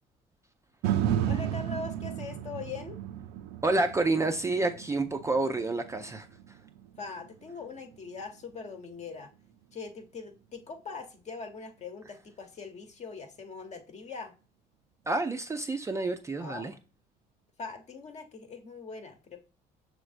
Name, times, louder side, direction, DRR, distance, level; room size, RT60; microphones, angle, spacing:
sound 1, 0.8-9.0 9.5-9.6, right 10 dB, 85° right, 0.4 m, -34 dB
voice 1, 1.3-3.0 7.0-9.3 9.7-14.3 16.4-16.7 17.6-19.4, left 4 dB, 45° left, 0.9 m, -41 dB
voice 2, 3.6-6.3 15.1-16.7, right 2 dB, 15° right, 0.3 m, -29 dB
6.2 x 3.2 x 2.5 m
cardioid pair, 110°, 17 cm